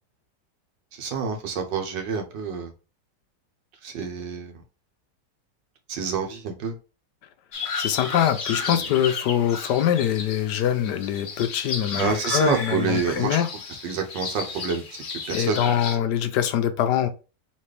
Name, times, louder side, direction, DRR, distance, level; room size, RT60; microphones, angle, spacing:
voice 1, 0.9-2.7 3.8-4.6 5.9-6.8 8.7-8.8 11.9-13.4 13.8-14.8 15.3-15.6, right 5 dB, 90° right, 4 dB, 1.7 m, -27 dB
sound 1, 7.5-16.0, left 5 dB, 55° left, 0.5 m, -34 dB
voice 2, 7.8-13.5 15.3-17.1, left 10 dB, 75° left, 9 dB, 1.1 m, -23 dB
4.1 x 3.3 x 3.2 m, 0.33 s
omnidirectional pair, 1.9 m